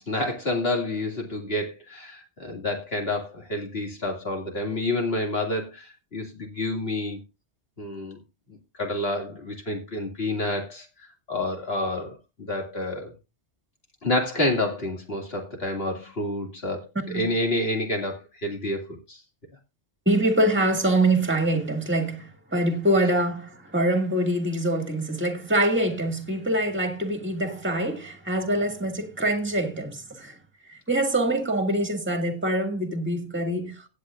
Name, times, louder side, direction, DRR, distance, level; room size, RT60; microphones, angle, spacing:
voice 1, 0.1-7.2 7.8-8.2 8.7-10.9 11.3-13.1 14.0-19.2, left 1 dB, 60° left, 2.6 m, -29 dB
voice 2, 17.0-17.3 20.1-30.3 30.7-33.9, right 1 dB, 10° right, 1.9 m, -24 dB
17.5 x 8.7 x 2.5 m
omnidirectional pair, 1.2 m